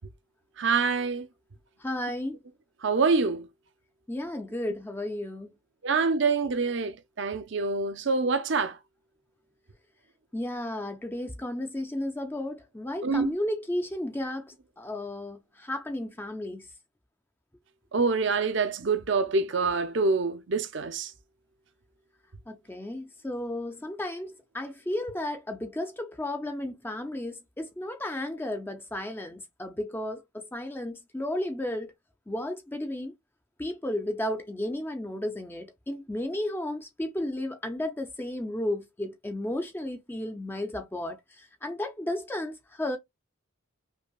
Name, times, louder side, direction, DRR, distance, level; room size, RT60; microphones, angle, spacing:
voice 1, 0.6-1.3 2.8-3.5 5.8-8.8 13.0-13.3 17.9-21.1, right 4 dB, 55° right, 0.6 m, -26 dB
voice 2, 1.8-2.4 4.1-5.5 10.3-16.7 22.5-31.9 32.3-33.1 33.6-43.0, left 1 dB, 10° left, 0.5 m, -33 dB
5.3 x 2.2 x 2.2 m
head